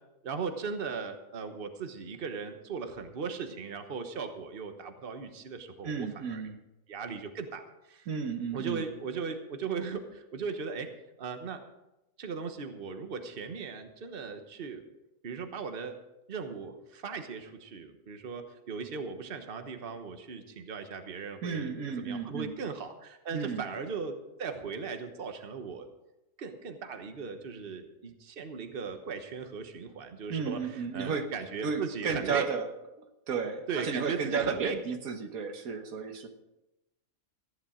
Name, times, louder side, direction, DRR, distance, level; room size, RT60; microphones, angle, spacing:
voice 1, 0.2-6.4 6.9-8.1 8.5-10.9 11.2-11.6 12.2-14.8 15.2-15.9 16.3-25.9 26.4-32.5 33.7-34.8, right 5 dB, 45° right, 7 dB, 1.3 m, -38 dB
voice 2, 5.8-6.6 8.1-8.8 21.4-22.5 23.3-23.6 30.3-31.3 31.6-32.7 33.3-36.3, right 5 dB, 85° right, 6 dB, 1.7 m, -33 dB
14.5 x 10.5 x 5.0 m, 0.94 s
omnidirectional pair, 1.5 m